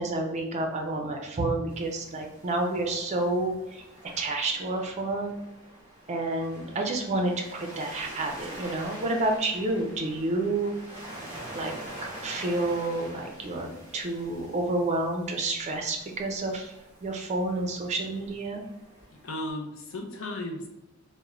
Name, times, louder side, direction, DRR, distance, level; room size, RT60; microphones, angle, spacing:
voice 1, 0.0-3.8 4.2-5.3 6.1-10.7 11.5-11.8 12.0-16.7 17.0-18.6, right 2 dB, 35° right, 2 dB, 0.4 m, -29 dB
Waves surf, 1.7-19.5, right 1 dB, 20° left, 1.0 m, -46 dB
voice 2, 19.1-20.7, left 1 dB, 70° left, 2 dB, 0.5 m, -35 dB
3.0 x 2.1 x 2.3 m, 0.95 s
head